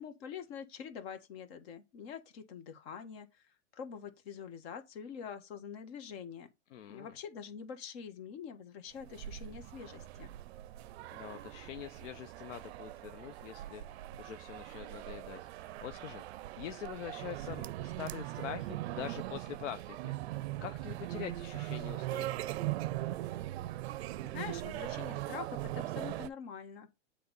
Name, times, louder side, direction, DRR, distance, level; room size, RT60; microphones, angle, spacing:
voice 1, 0.0-3.4 3.7-6.5 6.9-10.3 24.2-27.0, left 7 dB, 50° left, 1.6 m, -45 dB
voice 2, 6.7-7.1 11.1-22.6, left 10 dB, 70° left, 0.8 m, -45 dB
sound 1, 9.0-26.3, right 15 dB, 55° right, 0.5 m, -40 dB
7.8 x 3.4 x 5.3 m
hypercardioid pair, 130°, 38 cm